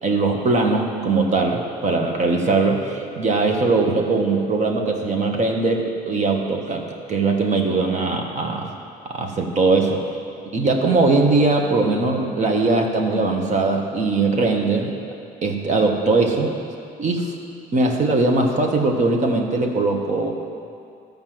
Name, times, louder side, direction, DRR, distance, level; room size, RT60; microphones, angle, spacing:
voice 1, 0.0-8.7 9.1-10.0 10.5-14.9 15.4-16.6 17.0-17.3 17.7-20.3, right 3 dB, 45° right, 2 dB, 1.4 m, -20 dB
13.0 x 5.3 x 7.8 m, 2.4 s
cardioid pair, 110°, 17 cm